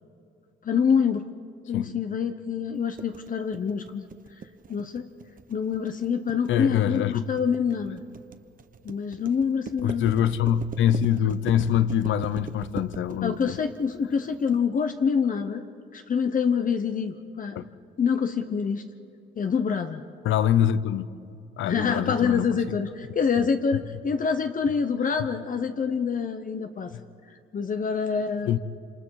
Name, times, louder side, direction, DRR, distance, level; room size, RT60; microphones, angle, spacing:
voice 1, 0.6-1.2 1.7-4.0 4.7-5.1 5.5-8.0 8.8-10.1 13.2-15.7 15.9-17.6 18.0-18.8 19.4-20.0 21.6-26.9 27.5-28.5, left 6 dB, 40° left, 7 dB, 1.0 m, -26 dB
sound 1, 3.0-14.5, right 6 dB, 45° right, 1.1 m, -40 dB
voice 2, 6.5-7.3 9.8-13.6 17.5-17.7 20.2-21.1 21.6-22.8 23.4-23.5 26.9-27.0 28.5-28.6, left 10 dB, 75° left, 15 dB, 0.8 m, -24 dB
27.5 x 27.0 x 4.8 m, 2.7 s
cardioid pair, 90°, 20 cm